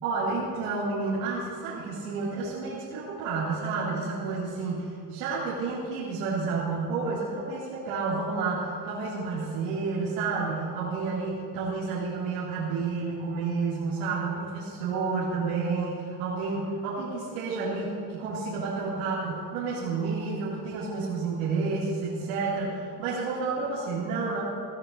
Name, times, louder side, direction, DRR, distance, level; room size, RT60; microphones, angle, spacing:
voice 1, 0.0-24.4, right 4 dB, 85° right, -8 dB, 2.6 m, -30 dB
17.0 x 13.0 x 2.6 m, 2.2 s
supercardioid pair, 100°, 43 cm